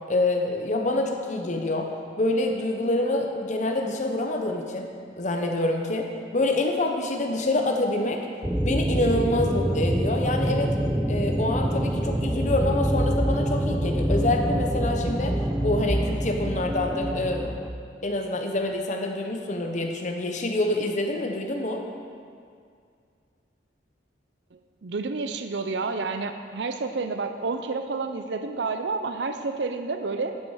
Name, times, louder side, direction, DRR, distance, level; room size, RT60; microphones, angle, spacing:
voice 1, 0.1-1.9 2.2-4.9 5.2-6.1 6.3-8.2 8.6-10.7 11.1-17.5 18.0-21.8, left 2 dB, 40° left, 2 dB, 0.9 m, -26 dB
sound 1, 8.4-17.7, equal, 5° right, 0.4 m, -26 dB
voice 2, 24.5-30.3, right 4 dB, 65° right, 7 dB, 0.5 m, -30 dB
12.0 x 7.2 x 4.8 m, 2.2 s
head